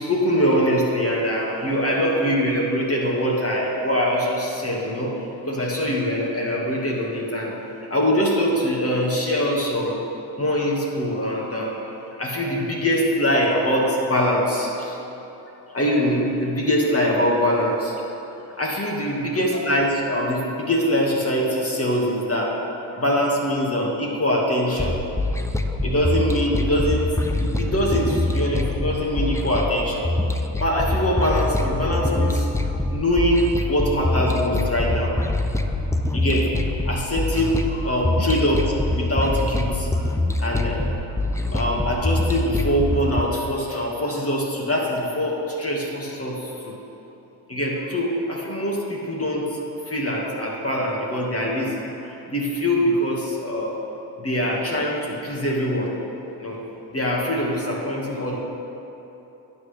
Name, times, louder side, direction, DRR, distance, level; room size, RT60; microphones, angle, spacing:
voice 1, 0.0-7.5 7.9-10.0 10.4-11.9 12.2-15.0 15.7-17.9 18.6-22.6 23.0-25.0 25.8-27.1 27.4-30.1 30.6-32.5 32.9-35.2 36.1-36.5 36.8-40.0 40.4-40.8 41.4-46.8 47.5-49.6 49.9-53.8 54.2-55.9 56.4-56.6 56.9-58.4, equal, 30° left, -3 dB, 2.1 m, -23 dB
sound 1, 24.8-43.2, left 2 dB, 5° left, 0.6 m, -24 dB
12.0 x 8.2 x 3.5 m, 3.0 s
supercardioid pair, 60°, 48 cm